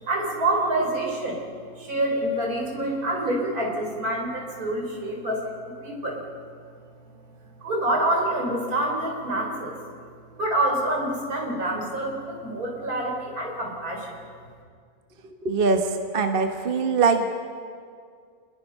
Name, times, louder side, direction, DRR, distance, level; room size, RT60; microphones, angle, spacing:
voice 1, 0.0-6.2 7.6-9.7 10.4-14.2, right 1 dB, 75° right, -1 dB, 4.8 m, -27 dB
voice 2, 15.4-15.8 16.1-17.3, right 4 dB, 40° right, 5 dB, 1.3 m, -21 dB
28.0 x 20.5 x 5.5 m, 2.2 s
omnidirectional pair, 1.6 m